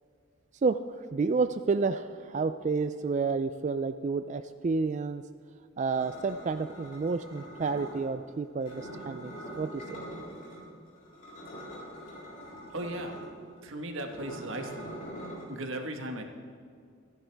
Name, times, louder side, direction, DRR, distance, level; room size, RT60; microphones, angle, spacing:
voice 1, 0.6-5.2 5.8-10.0, right 4 dB, 35° right, 10 dB, 0.3 m, -30 dB
sound 1, 5.9-8.1 8.6-10.6 11.0-15.4, equal, 45° left, 4.0 m, -44 dB
voice 2, 12.7-13.2 13.6-14.9 15.5-16.2, right 1 dB, 90° right, 4 dB, 1.5 m, -37 dB
27.0 x 10.0 x 3.5 m, 2.2 s
head